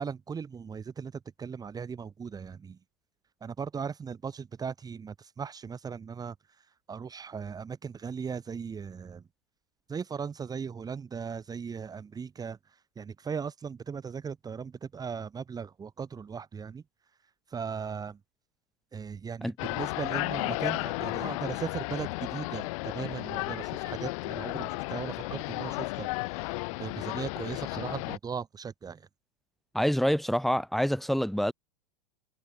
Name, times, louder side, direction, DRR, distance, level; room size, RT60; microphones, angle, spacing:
voice 1, 0.0-2.8 3.4-9.2 9.9-16.8 17.2-18.2 18.9-29.1, right 6 dB, 20° right, 3.6 m, -38 dB
sound 1, 19.6-28.2, left 27 dB, 60° left, 4.9 m, -34 dB
voice 2, 29.7-31.5, equal, ahead, 7.8 m, -26 dB
hypercardioid pair, 120°, 19 cm